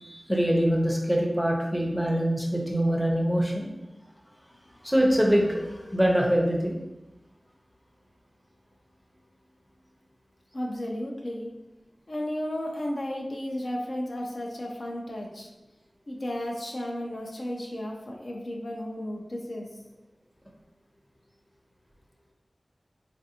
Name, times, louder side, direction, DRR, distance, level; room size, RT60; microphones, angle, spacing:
voice 1, 0.0-3.7 4.8-6.8, equal, ahead, -1 dB, 0.6 m, -24 dB
voice 2, 10.5-11.5 12.1-15.5 16.1-19.7, left 1 dB, 55° left, -1 dB, 0.5 m, -33 dB
3.3 x 2.5 x 2.8 m, 0.99 s
wide cardioid pair, 60°, 0 cm